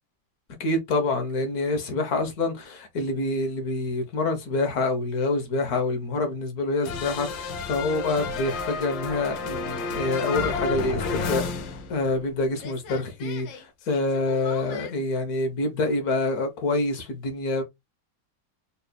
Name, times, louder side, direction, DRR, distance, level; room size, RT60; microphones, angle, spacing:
voice 1, 0.6-11.4 11.9-17.6, left 2 dB, 60° left, 1.3 m, -26 dB
sound 1, 6.8-12.3 12.6-14.9, left 4 dB, 90° left, 1.5 m, -32 dB
4.1 x 3.3 x 2.2 m
omnidirectional pair, 2.0 m